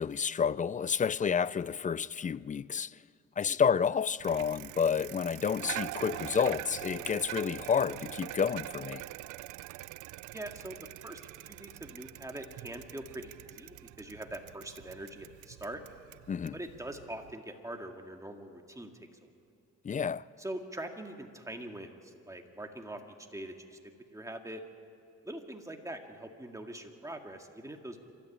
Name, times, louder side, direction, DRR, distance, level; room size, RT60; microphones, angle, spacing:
voice 1, 0.0-3.0 3.4-9.0 16.3-16.5 19.8-20.3, left 7 dB, 25° left, 0.4 m, -30 dB
Bicycle, 4.2-17.3, right 16 dB, 85° right, 0.5 m, -44 dB
voice 2, 10.3-15.8 16.5-19.3 20.4-23.0 23.3-23.8 24.1-24.6 25.2-28.0, right 1 dB, 10° right, 2.1 m, -43 dB
26.5 x 13.5 x 8.6 m
cardioid pair, 90°, 30 cm